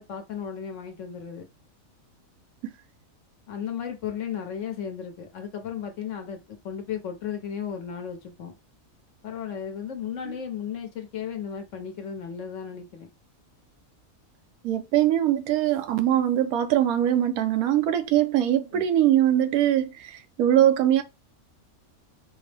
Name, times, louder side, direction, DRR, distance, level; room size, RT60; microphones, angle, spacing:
voice 1, 0.0-1.5 3.5-8.6 9.2-13.1 18.7-18.9, left 8 dB, 65° left, 1.1 m, -35 dB
voice 2, 14.6-21.0, right 11 dB, 85° right, 1.1 m, -22 dB
4.3 x 2.0 x 3.3 m
omnidirectional pair, 1.5 m